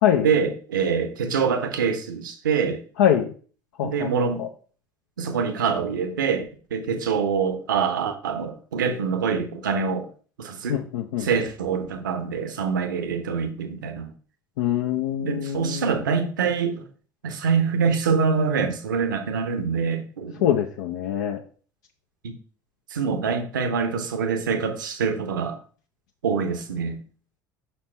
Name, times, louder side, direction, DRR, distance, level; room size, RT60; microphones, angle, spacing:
voice 1, 0.2-2.8 3.8-4.4 5.2-6.5 6.7-10.1 10.4-10.8 11.2-14.1 15.2-16.9 17.2-20.5 22.2-22.4 22.9-25.6 26.2-27.0, right 6 dB, 70° right, 0.9 m, -25 dB
voice 2, 3.0-3.3 3.8-4.1 4.4-4.5 10.7-11.3 14.6-15.9 20.4-21.4, left 10 dB, 60° left, 0.6 m, -23 dB
6.0 x 4.4 x 4.3 m
figure-of-eight pair, 65°, 11 cm